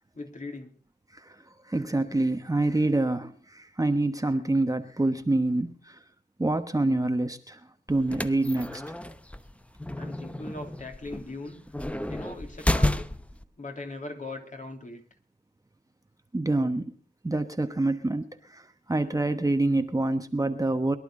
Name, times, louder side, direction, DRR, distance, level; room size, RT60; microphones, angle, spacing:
voice 1, 0.1-0.7 10.0-11.6 12.1-13.1 13.6-15.0, left 2 dB, 45° left, 4 dB, 3.0 m, -39 dB
voice 2, 1.7-6.0 6.4-7.6 7.9-9.0 16.3-16.9 17.2-21.0, right 2 dB, 20° right, 8 dB, 1.1 m, -26 dB
sound 1, 7.9-13.4, left 1 dB, 5° left, 0.8 m, -31 dB
22.5 x 11.5 x 3.8 m, 0.40 s
cardioid pair, 75°, 18 cm